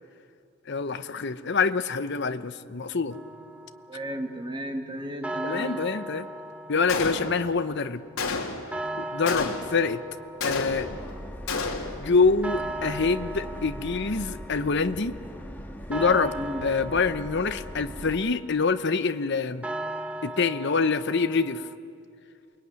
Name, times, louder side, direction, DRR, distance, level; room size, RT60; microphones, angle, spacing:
voice 1, 0.7-3.2 5.4-6.3 6.7-8.0 9.0-10.0 10.4-11.0 12.0-15.2 15.9-19.7 20.2-21.7, left 4 dB, 50° left, 11 dB, 0.8 m, -26 dB
sound 1, 3.1-21.8, right 1 dB, 5° right, 0.9 m, -39 dB
voice 2, 3.9-5.9 16.3-16.6, equal, 20° right, 3 dB, 2.3 m, -34 dB
Gunshot gunfire, 6.9-7.6 8.2-8.7 9.3-9.9 10.4-11.1 11.5-12.1, left 3 dB, 80° left, 2.8 m, -30 dB
Subway metro underground, 10.7-18.2, equal, 10° left, 1.4 m, -40 dB
28.5 x 21.5 x 9.6 m, 2.5 s
head